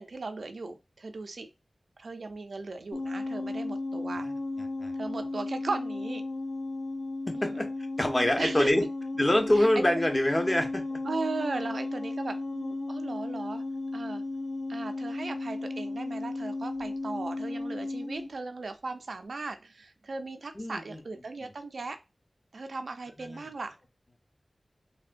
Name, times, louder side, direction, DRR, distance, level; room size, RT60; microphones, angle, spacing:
voice 1, 0.0-1.5 2.0-4.3 5.0-6.2 7.3-7.6 8.4-8.7 9.6-9.7 11.0-13.6 13.9-14.2 14.7-22.0 22.5-23.7, right 3 dB, 80° right, 7 dB, 0.4 m, -37 dB
sound 1, 2.9-18.3, left 2 dB, 80° left, 0.7 m, -35 dB
voice 2, 7.3-7.7 8.0-8.8 9.2-11.0 20.5-21.0 21.4-21.5 23.2-23.5, left 1 dB, 25° left, 4 dB, 0.7 m, -25 dB
3.4 x 2.2 x 2.5 m, 0.25 s
wide cardioid pair, 65°, 0 cm